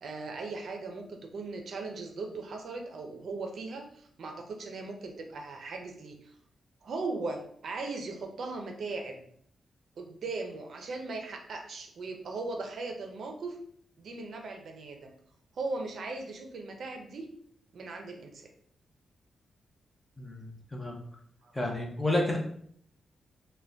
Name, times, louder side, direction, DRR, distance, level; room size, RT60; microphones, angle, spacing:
voice 1, 0.0-6.3 6.8-9.3 10.0-13.6 14.0-15.1 15.5-17.3 17.7-18.5 21.4-21.5, right 3 dB, 65° right, 3 dB, 0.4 m, -38 dB
voice 2, 20.2-21.0 21.5-22.4, left 1 dB, 15° left, 0 dB, 0.6 m, -30 dB
2.5 x 2.1 x 3.3 m, 0.64 s
cardioid pair, 115°, 0 cm